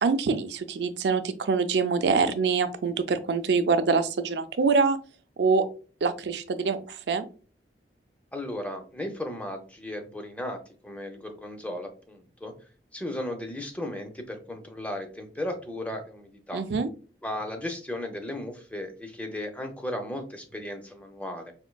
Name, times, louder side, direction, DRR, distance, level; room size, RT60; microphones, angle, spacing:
voice 1, 0.0-5.0 5.4-5.6 6.0-7.3 16.5-16.9, right 4 dB, 75° right, 11 dB, 0.4 m, -25 dB
voice 2, 8.3-12.5 12.9-16.6 17.2-21.5, left 1 dB, 10° left, 5 dB, 0.5 m, -35 dB
4.3 x 2.5 x 2.2 m, 0.38 s
head